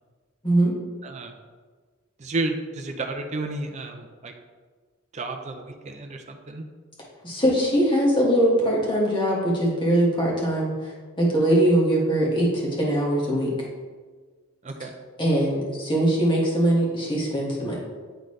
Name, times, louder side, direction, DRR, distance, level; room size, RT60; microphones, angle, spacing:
voice 1, 1.0-1.3 2.2-4.3 5.1-6.6 14.6-14.9, right 2 dB, 35° right, 4 dB, 0.5 m, -32 dB
voice 2, 7.2-12.5 12.8-13.5 15.2-17.8, right 1 dB, 25° left, -4 dB, 1.6 m, -21 dB
9.0 x 3.9 x 3.2 m, 1.5 s
head